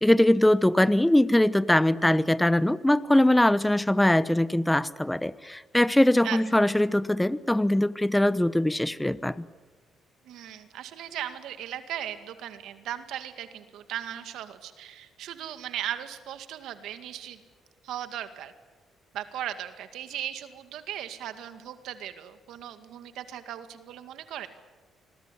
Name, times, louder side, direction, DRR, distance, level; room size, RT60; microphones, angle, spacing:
voice 1, 0.0-9.4, left 1 dB, 5° left, 17 dB, 0.9 m, -22 dB
voice 2, 10.2-17.4 17.8-18.5 19.1-24.5, right 11 dB, 85° right, 9 dB, 2.0 m, -37 dB
26.5 x 21.5 x 10.0 m, 1.3 s
cardioid pair, 90°, 0 cm